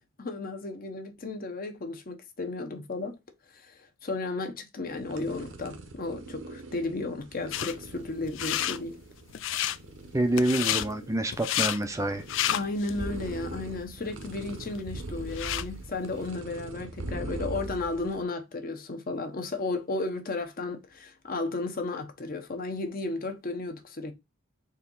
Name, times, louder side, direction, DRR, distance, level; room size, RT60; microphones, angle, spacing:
voice 1, 0.2-3.2 3.5-9.0 12.5-24.1, left 3 dB, 45° left, 1.0 m, -34 dB
sound 1, 4.9-18.2, right 2 dB, 70° right, 1.0 m, -41 dB
sound 2, 7.5-7.7 8.2-8.8 9.3-9.8 10.4-10.9 11.3-11.8 12.2-12.9 13.4-13.5 14.2-14.3 14.6-15.7, left 12 dB, 65° left, 0.4 m, -30 dB
voice 2, 10.1-12.2, right 1 dB, 15° right, 0.5 m, -27 dB
4.4 x 2.9 x 3.7 m
head